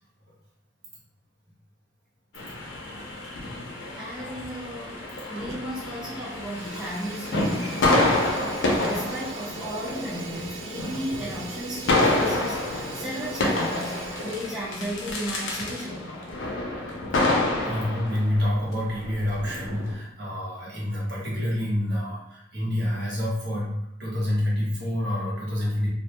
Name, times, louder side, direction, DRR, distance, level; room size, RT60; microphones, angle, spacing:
sound 1, 2.3-19.9, left 2 dB, 65° left, 0.5 m, -28 dB
voice 1, 3.9-8.2 8.6-16.2, equal, 5° right, -10 dB, 0.4 m, -35 dB
Fire, 5.3-5.9 6.2-14.9, right 3 dB, 70° right, 0.4 m, -40 dB
voice 2, 17.1-25.9, left 1 dB, 55° right, -6 dB, 0.8 m, -28 dB
2.1 x 2.0 x 2.8 m, 0.80 s
head